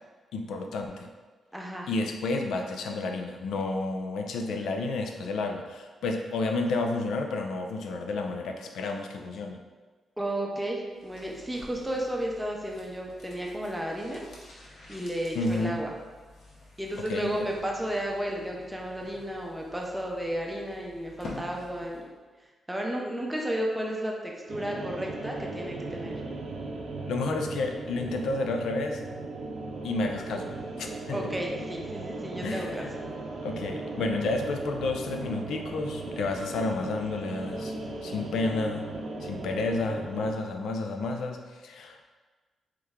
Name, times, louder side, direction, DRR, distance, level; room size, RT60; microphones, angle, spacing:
voice 1, 0.3-1.1 1.9-9.6 15.3-15.8 17.1-17.5 27.1-29.0 29.8-30.5 30.8-31.2 32.4-33.0 33.4-37.7 38.0-38.9 39.2-42.0, left 3 dB, 90° left, 3 dB, 0.4 m, -31 dB
voice 2, 1.5-1.9 10.2-14.2 14.9-15.9 16.8-22.0 22.7-26.2 31.1-32.8, right 1 dB, 5° right, -1 dB, 0.6 m, -33 dB
sound 1, 10.9-22.1 22.4-22.5, left 2 dB, 70° left, 0.8 m, -49 dB
sound 2, 24.5-40.3, right 2 dB, 75° right, 0.5 m, -37 dB
3.5 x 3.1 x 3.5 m, 1.4 s
wide cardioid pair, 145°, 0 cm